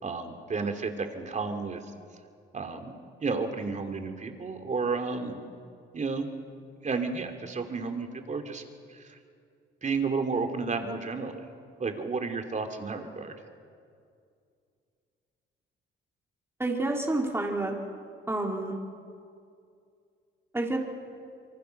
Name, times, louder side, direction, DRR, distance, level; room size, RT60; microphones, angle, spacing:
voice 1, 0.0-1.8 2.5-2.9 3.2-5.4 5.9-6.3 6.8-8.6 8.9-9.2 9.8-11.4 11.8-13.3, right 4 dB, 35° right, 5 dB, 3.0 m, -32 dB
voice 2, 16.6-17.7 18.3-18.8 20.5-20.8, right 2 dB, 10° right, 0 dB, 3.6 m, -28 dB
26.5 x 24.0 x 6.7 m, 2.3 s
cardioid pair, 90°, 20 cm